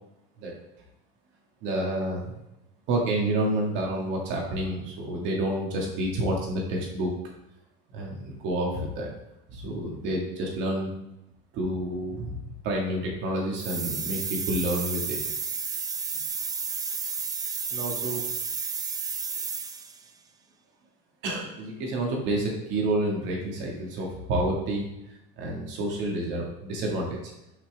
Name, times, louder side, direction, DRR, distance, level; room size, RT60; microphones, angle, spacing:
voice 1, 1.6-2.3 2.9-7.1 7.9-9.1 9.5-10.9 11.5-15.2 17.7-18.2 21.2-24.9 25.4-27.2, right 1 dB, 65° right, -1 dB, 2.0 m, -29 dB
sound 1, 13.6-20.0, right 5 dB, 20° right, 0.4 m, -32 dB
5.9 x 5.7 x 3.5 m, 0.86 s
cardioid pair, 150°, 20 cm